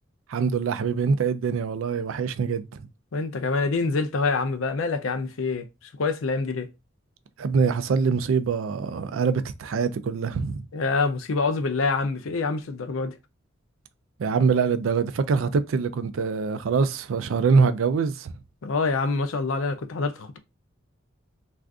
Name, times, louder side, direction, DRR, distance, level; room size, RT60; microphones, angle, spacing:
voice 1, 0.3-2.9 7.4-10.6 14.2-18.3, right 5 dB, 80° right, 0.4 m, -24 dB
voice 2, 3.1-5.7 6.0-6.7 10.7-13.2 18.6-20.4, left 4 dB, 85° left, 0.5 m, -26 dB
2.4 x 2.4 x 3.4 m
head